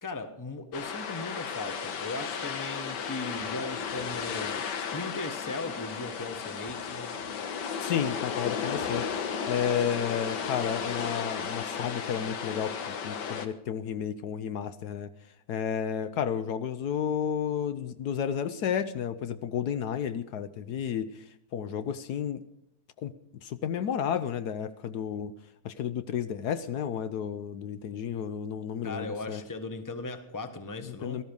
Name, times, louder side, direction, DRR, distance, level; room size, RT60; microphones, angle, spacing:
voice 1, 0.0-7.2 28.8-31.2, left 2 dB, 15° left, 8 dB, 1.1 m, -38 dB
sound 1, 0.7-13.5, left 6 dB, 90° left, 1.8 m, -34 dB
voice 2, 7.8-9.0 9.5-15.1 15.5-21.2 21.5-22.4 23.0-23.1 23.4-25.3 25.6-29.4 30.9-31.2, left 8 dB, 70° left, 12 dB, 1.2 m, -32 dB
18.0 x 13.0 x 5.3 m, 0.75 s
omnidirectional pair, 1.8 m